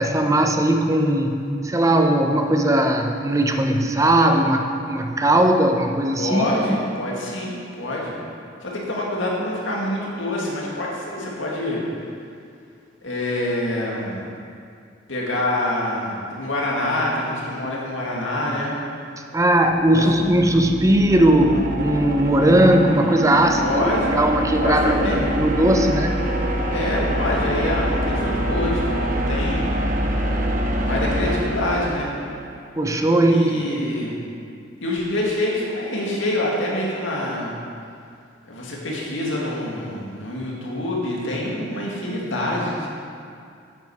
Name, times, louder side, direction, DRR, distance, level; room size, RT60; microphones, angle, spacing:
voice 1, 0.0-6.6 19.3-26.2 32.8-33.5, right 1 dB, 15° right, 4 dB, 0.7 m, -18 dB
voice 2, 6.2-8.2 8.6-11.8 13.0-14.3 15.1-18.8 19.9-20.1 23.6-24.2 24.6-25.2 26.7-29.8 30.8-32.2 33.3-34.2 34.8-37.5 38.4-42.9, left 1 dB, 90° left, -3 dB, 2.1 m, -26 dB
sound 1, 19.7-32.6, equal, 45° right, 0.9 m, -25 dB
9.8 x 8.7 x 4.8 m, 2.3 s
head